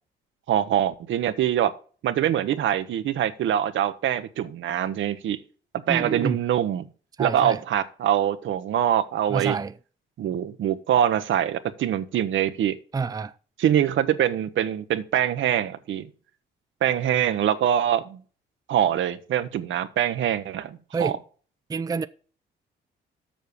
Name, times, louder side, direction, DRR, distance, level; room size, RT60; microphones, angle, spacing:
voice 1, 0.5-1.7 2.0-5.4 5.9-6.9 7.2-9.6 10.2-12.8 13.6-16.1 16.8-18.2 18.7-21.2, right 10 dB, 65° right, 0.9 m, -24 dB
voice 2, 5.9-6.4 7.2-7.6 9.3-9.8 12.9-13.3 20.9-21.2 21.7-22.1, right 5 dB, 15° right, 0.5 m, -28 dB
7.3 x 6.4 x 7.0 m
supercardioid pair, 70°, 21 cm